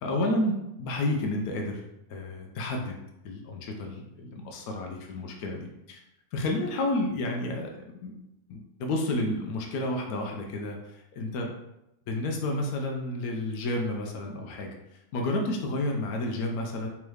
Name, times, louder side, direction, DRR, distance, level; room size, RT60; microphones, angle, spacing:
voice 1, 0.0-1.8 2.1-3.0 3.2-6.0 6.3-7.7 8.0-8.2 8.5-11.5 12.1-16.9, left 1 dB, 85° left, 2 dB, 1.1 m, -31 dB
3.5 x 3.0 x 3.2 m, 0.87 s
omnidirectional pair, 1.5 m